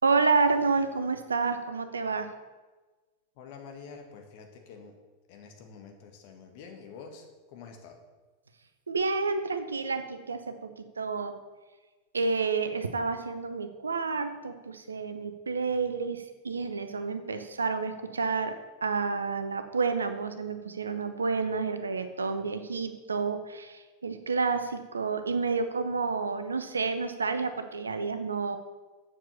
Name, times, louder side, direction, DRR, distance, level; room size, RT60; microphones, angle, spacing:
voice 1, 0.0-2.3 8.9-10.7 11.0-11.4 12.1-18.5 18.8-28.6, right 4 dB, 75° right, 9 dB, 0.8 m, -29 dB
voice 2, 3.3-5.0 5.3-8.0, left 5 dB, 45° left, 4 dB, 1.7 m, -47 dB
7.6 x 7.1 x 6.8 m, 1.2 s
figure-of-eight pair, 90°, 0 cm